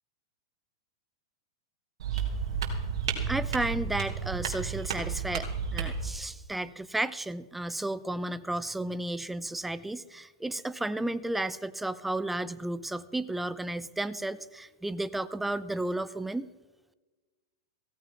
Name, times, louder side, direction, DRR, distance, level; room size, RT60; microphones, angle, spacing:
sound 1, 2.0-6.1, right 6 dB, 70° right, 3.1 m, -32 dB
voice 1, 3.3-16.5, right 1 dB, 5° right, 15 dB, 0.6 m, -33 dB
16.5 x 15.0 x 3.9 m, 1.2 s
hypercardioid pair, 115°, 3 cm